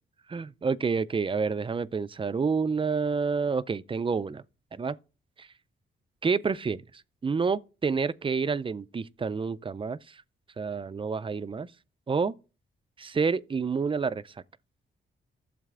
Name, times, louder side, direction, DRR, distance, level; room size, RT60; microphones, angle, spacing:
voice 1, 0.3-4.4 4.7-5.0 5.4-5.5 6.2-6.8 7.2-10.0 10.6-11.7 12.1-12.3 13.0-14.2, right 5 dB, 25° right, 0.4 m, -28 dB
12.5 x 7.3 x 2.4 m
cardioid pair, 65°, 20 cm